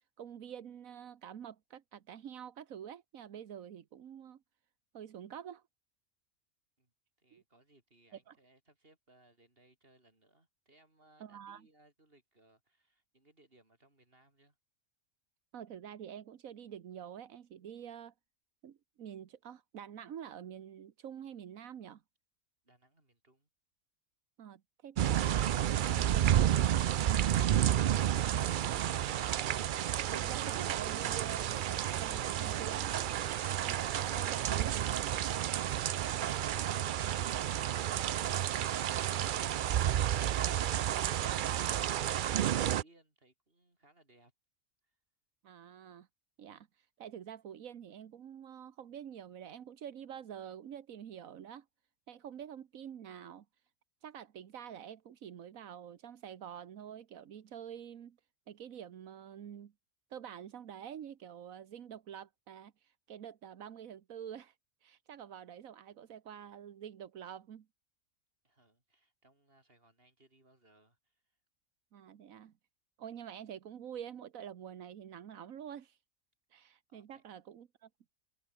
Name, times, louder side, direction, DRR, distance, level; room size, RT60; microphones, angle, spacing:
voice 1, 0.2-4.4 4.9-5.6 7.3-7.4 8.3-8.4 11.2-11.7 15.5-18.1 18.6-22.0 24.4-26.4 28.6-29.5 30.1-32.9 33.6-35.1 45.4-46.1 46.4-51.7 52.1-53.4 54.0-58.2 58.5-59.7 60.1-64.5 64.8-67.7 71.9-72.5 73.0-76.0 76.5-77.9, right 9 dB, 85° right, 1.5 m, -47 dB
voice 2, 7.2-14.6 22.6-23.5 44.8-45.0 68.4-71.4 76.9-77.2, right 2 dB, 45° right, 5.2 m, -66 dB
sound 1, 25.0-42.8, right 11 dB, 70° right, 0.4 m, -31 dB
omnidirectional pair, 1.4 m